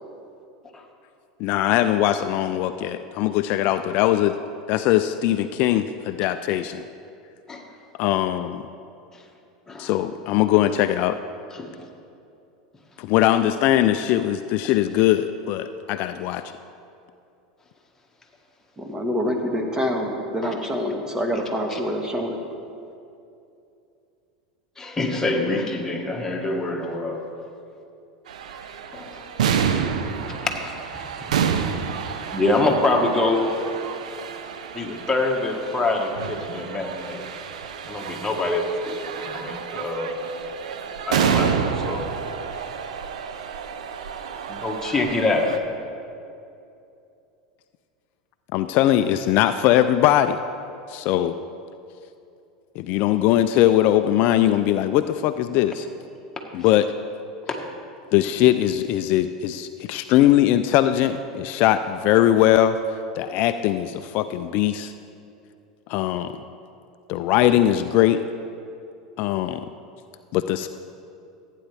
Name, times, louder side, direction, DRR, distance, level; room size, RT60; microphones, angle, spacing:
voice 1, 1.4-4.3 4.7-6.8 8.0-8.6 9.8-11.2 13.0-16.4 48.5-50.4 50.9-51.3 52.9-55.8 56.5-56.8 58.1-62.8 63.2-64.9 65.9-66.3 67.1-68.2 69.2-69.6 70.3-70.7, left 12 dB, 55° left, 10 dB, 0.4 m, -20 dB
voice 2, 18.8-22.3, equal, 20° right, 3 dB, 1.5 m, -26 dB
voice 3, 24.8-27.2 29.2-29.3 32.3-33.4 34.7-37.2 37.9-40.1 41.1-42.0 44.6-45.6, left 2 dB, 15° left, 0 dB, 1.6 m, -25 dB
sound 1, 28.3-45.6, right 7 dB, 80° right, 0.7 m, -29 dB
15.0 x 9.2 x 3.4 m, 2.6 s
hypercardioid pair, 90°, 4 cm